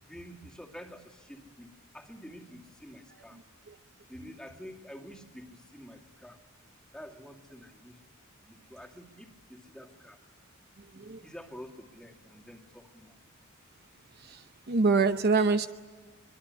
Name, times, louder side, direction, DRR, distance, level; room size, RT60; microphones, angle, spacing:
voice 1, 0.0-3.4 4.1-6.4 6.9-8.0 8.4-10.2 10.9-13.2, equal, 5° left, 1 dB, 2.3 m, -48 dB
voice 2, 10.8-11.2 14.2-15.7, right 4 dB, 50° right, 9 dB, 0.8 m, -26 dB
24.0 x 23.0 x 8.5 m, 1.5 s
head